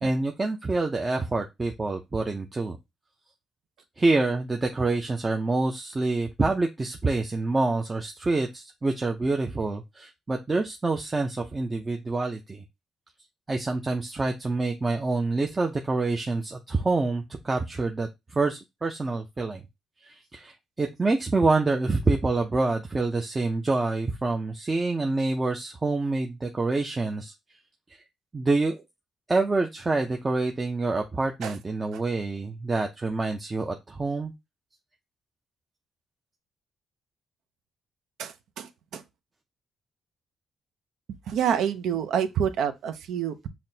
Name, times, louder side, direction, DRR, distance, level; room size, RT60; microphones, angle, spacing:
voice 1, 0.0-2.8 4.0-12.6 13.5-19.6 20.0-27.3 28.3-28.8 29.3-34.3, right 3 dB, 25° right, 0.5 m, -27 dB
voice 2, 38.2-39.0 41.3-43.5, right 8 dB, 75° right, 0.5 m, -28 dB
5.7 x 2.1 x 2.7 m
cardioid pair, 90°, 0 cm